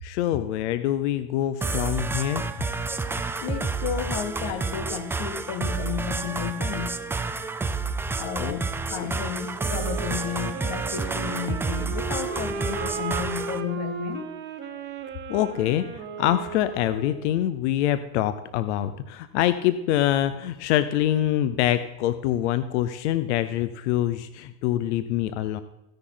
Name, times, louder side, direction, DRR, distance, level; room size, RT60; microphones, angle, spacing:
voice 1, 0.0-2.4 8.4-8.6 9.0-9.2 15.3-25.6, left 12 dB, 85° left, 12 dB, 0.8 m, -25 dB
sound 1, 1.6-13.6, right 4 dB, 5° right, 0.4 m, -30 dB
voice 2, 3.4-7.0 8.1-14.3, left 8 dB, 50° left, 8 dB, 1.6 m, -32 dB
sound 2, 9.5-17.4, right 6 dB, 30° right, 1.6 m, -35 dB
15.5 x 10.5 x 3.9 m, 0.98 s
supercardioid pair, 145°, 34 cm